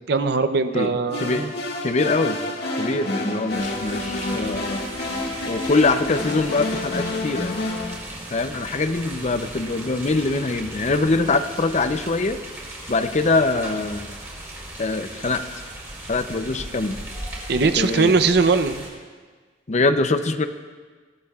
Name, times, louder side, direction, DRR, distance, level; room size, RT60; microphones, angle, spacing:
voice 1, 0.1-1.5 17.5-18.8, right 4 dB, 65° right, 10 dB, 0.7 m, -20 dB
voice 2, 0.7-1.5 1.8-2.4 2.8-4.8 5.4-7.7 8.3-12.4 12.9-14.1 14.8-15.4 16.1-17.0 17.8-18.1 19.7-20.5, left 3 dB, 40° left, 9 dB, 0.6 m, -23 dB
sound 1, 1.1-7.9, left 2 dB, 65° left, 1.9 m, -28 dB
sound 2, 3.5-18.9, right 1 dB, 15° right, 4.1 m, -37 dB
21.5 x 15.5 x 2.4 m, 1.5 s
head